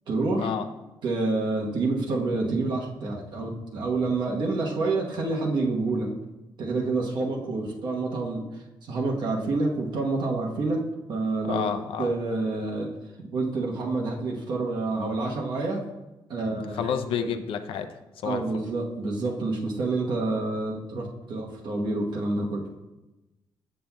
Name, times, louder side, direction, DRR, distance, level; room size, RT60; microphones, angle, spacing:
voice 1, 0.1-0.5 1.0-6.1 6.6-8.4 8.9-10.8 11.1-11.6 12.0-12.9 13.3-15.8 16.3-17.3 18.2-22.6, right 3 dB, 55° right, -2 dB, 1.0 m, -28 dB
voice 2, 11.4-12.1 16.7-17.9 18.2-18.6, left 7 dB, 90° left, 7 dB, 0.4 m, -30 dB
7.6 x 7.1 x 2.2 m, 1.0 s
wide cardioid pair, 180°, 9 cm